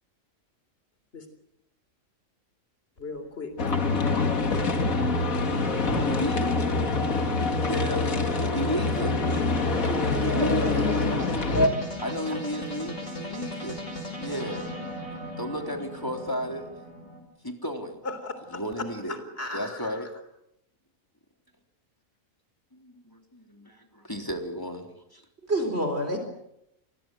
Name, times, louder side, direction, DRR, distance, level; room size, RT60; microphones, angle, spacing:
sound 1, 3.0-17.2, left 1 dB, 65° left, 5.7 m, -38 dB
voice 1, 3.0-3.7 18.0-18.6 19.1-20.1, left 2 dB, 45° left, 9 dB, 3.8 m, -37 dB
sound 2, 3.6-11.7, left 3 dB, 90° left, 2.6 m, -25 dB
voice 2, 6.0-6.5 7.7-9.2 10.2-10.8 12.0-13.8 14.2-14.7 15.4-16.7 17.4-18.0 18.5-19.2 19.5-20.1 22.7-25.2, equal, 15° left, 3 dB, 3.6 m, -33 dB
voice 3, 9.9-11.7 25.5-26.2, equal, 50° right, 5 dB, 4.4 m, -30 dB
28.0 x 22.0 x 7.9 m, 0.82 s
omnidirectional pair, 1.4 m